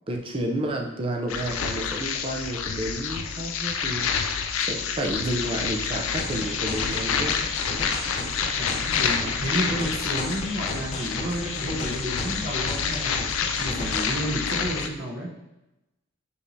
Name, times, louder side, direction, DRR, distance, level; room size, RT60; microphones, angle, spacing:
voice 1, 0.1-7.3 8.1-8.3, right 1 dB, 25° right, 1 dB, 0.5 m, -31 dB
sound 1, 1.3-14.9, left 6 dB, 80° left, 0.4 m, -28 dB
sound 2, 6.2-14.2, left 1 dB, 35° left, 0.7 m, -36 dB
voice 2, 8.5-13.3 13.6-15.3, right 1 dB, 50° right, -2 dB, 0.9 m, -31 dB
5.3 x 3.2 x 2.7 m, 0.94 s
head